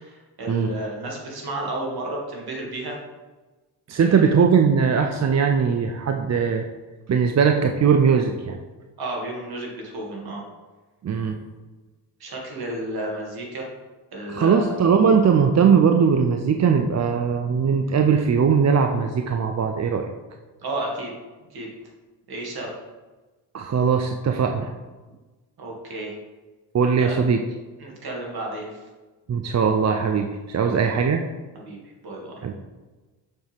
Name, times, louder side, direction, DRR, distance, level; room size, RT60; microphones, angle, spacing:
voice 1, 0.0-3.0 4.0-4.4 9.0-10.4 12.2-13.7 14.1-15.0 20.6-21.1 21.5-21.7 22.3-22.7 25.6-26.2 27.0-27.2 27.8-28.8 30.6-31.0 31.7-32.4, right 1 dB, 55° right, -2 dB, 2.4 m, -32 dB
voice 2, 3.9-6.6 7.1-8.6 11.0-11.4 14.3-20.1 23.5-24.7 26.7-27.4 29.3-31.3 32.4-32.5, right 6 dB, 40° right, 5 dB, 0.6 m, -20 dB
6.5 x 6.5 x 3.6 m, 1.2 s
supercardioid pair, 55°, 44 cm